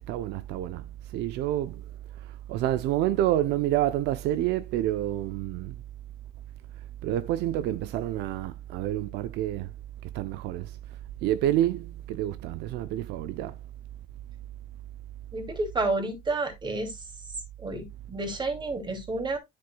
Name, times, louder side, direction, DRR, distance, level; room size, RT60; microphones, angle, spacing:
voice 1, 0.1-0.8 1.1-1.8 2.5-5.7 7.0-9.7 10.1-10.7 11.2-13.5, right 13 dB, 85° right, 0.6 m, -28 dB
voice 2, 15.3-16.9 17.6-19.4, right 2 dB, 25° right, 2.7 m, -30 dB
9.8 x 7.5 x 2.3 m
cardioid pair, 110°, 17 cm